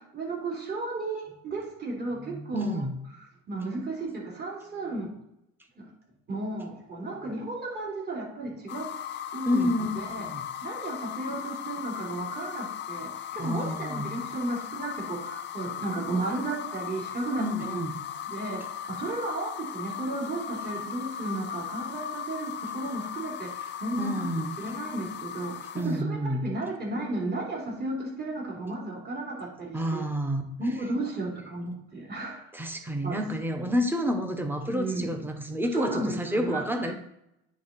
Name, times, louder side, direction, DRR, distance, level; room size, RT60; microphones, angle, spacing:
voice 1, 0.1-2.8 3.5-5.2 5.8-5.9 6.3-8.8 9.3-10.3 10.6-17.8 18.3-24.3 24.6-25.6 25.8-30.0 30.6-32.4 33.0-33.2 34.7-35.1 35.7-36.9, right 2 dB, 30° right, -3 dB, 3.1 m, -34 dB
voice 2, 2.5-3.0 9.5-10.4 13.4-14.2 17.4-18.0 24.0-24.6 25.7-26.4 29.7-30.4 32.5-36.9, equal, 5° right, 4 dB, 1.2 m, -29 dB
sound 1, 8.7-26.0, left 9 dB, 35° left, 0.5 m, -37 dB
9.8 x 3.8 x 4.2 m, 0.80 s
supercardioid pair, 105°, 31 cm